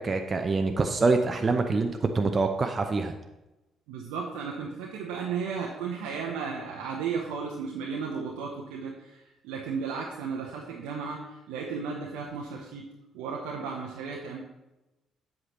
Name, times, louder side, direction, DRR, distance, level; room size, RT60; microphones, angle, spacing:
voice 1, 0.0-3.1, right 3 dB, 35° right, 5 dB, 0.7 m, -25 dB
voice 2, 3.9-12.9 13.1-14.4, right 5 dB, 75° right, -2 dB, 0.8 m, -34 dB
7.8 x 7.3 x 3.1 m, 1.0 s
hypercardioid pair, 45°, 0 cm